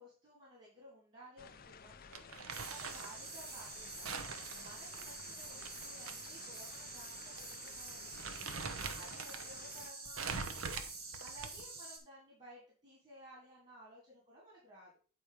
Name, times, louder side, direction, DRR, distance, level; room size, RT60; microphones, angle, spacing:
voice 1, 0.0-10.8 11.2-14.9, right 1 dB, 30° right, -4 dB, 3.2 m, -57 dB
sound 1, 1.4-9.9, left 6 dB, 45° left, 0.5 m, -55 dB
Crumpling crinkling, 2.1-3.1 4.0-6.1 6.5-6.6 7.4-7.6 7.9-9.5 10.2-11.8, right 5 dB, 80° right, 0.9 m, -43 dB
sound 2, 2.5-12.0, right 3 dB, 50° right, 1.8 m, -47 dB
8.5 x 4.6 x 5.0 m, 0.38 s
head